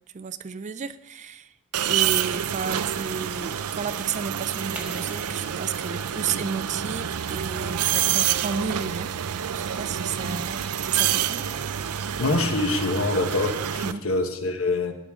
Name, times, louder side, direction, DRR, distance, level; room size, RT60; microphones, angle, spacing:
voice 1, 0.1-1.5 1.8-9.1 9.5-11.5 13.8-14.1, right 6 dB, 35° right, 13 dB, 0.4 m, -32 dB
sound 1, 1.7-13.9, right 9 dB, 85° right, 0.5 m, -28 dB
sound 2, 4.8-7.4, right 1 dB, 5° right, 0.9 m, -45 dB
voice 2, 12.2-14.9, left 2 dB, 65° left, 6 dB, 1.2 m, -25 dB
16.0 x 10.5 x 3.7 m, 0.88 s
head